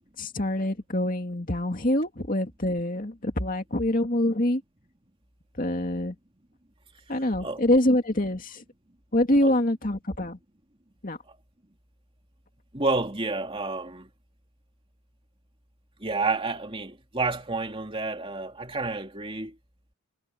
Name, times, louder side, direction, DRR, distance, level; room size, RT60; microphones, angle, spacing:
voice 1, 0.2-4.6 5.6-6.2 7.1-8.6 9.1-10.4 11.0-11.2, left 1 dB, 40° left, 2.5 m, -25 dB
voice 2, 12.7-14.1 16.0-19.6, right 3 dB, 25° right, 2.9 m, -30 dB
head